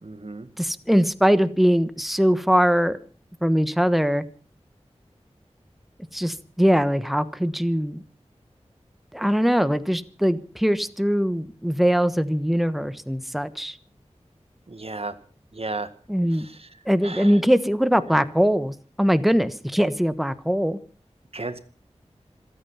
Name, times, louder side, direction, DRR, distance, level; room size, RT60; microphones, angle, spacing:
voice 1, 0.0-0.5 14.7-15.1 15.5-15.9 16.6-16.7 17.0-17.3 21.3-21.6, right 2 dB, 55° right, 10 dB, 1.8 m, -33 dB
voice 2, 0.6-3.0 3.4-4.2 6.1-8.0 9.1-13.8 16.1-16.5 16.9-20.8, equal, ahead, 13 dB, 1.2 m, -21 dB
26.5 x 9.3 x 5.7 m, 0.41 s
wide cardioid pair, 40°, 12 cm